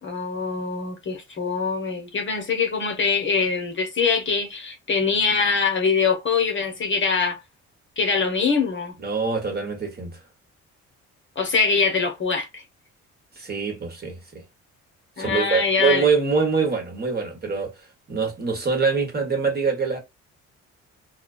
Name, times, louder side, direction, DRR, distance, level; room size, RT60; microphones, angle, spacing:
voice 1, 0.0-7.4 8.0-8.9 11.4-12.6 15.2-16.0, left 5 dB, 40° left, 1.0 m, -23 dB
voice 2, 9.0-10.2 13.4-14.4 15.2-17.7 18.1-20.0, right 5 dB, 30° right, 1.1 m, -24 dB
2.3 x 2.2 x 2.4 m
cardioid pair, 90°, 30 cm